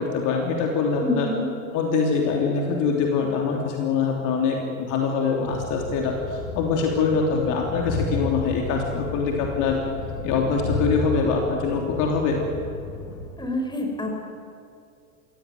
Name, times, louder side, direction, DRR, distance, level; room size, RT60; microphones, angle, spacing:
voice 1, 0.0-1.3 1.7-9.8 10.2-12.4, left 5 dB, 45° left, 1 dB, 3.3 m, -24 dB
voice 2, 1.0-1.5 13.4-14.2, left 2 dB, 10° left, 2 dB, 5.2 m, -27 dB
Train, 5.5-13.3, left 3 dB, 60° left, 6.2 m, -32 dB
24.5 x 17.5 x 9.2 m, 2.4 s
figure-of-eight pair, 80°, 42 cm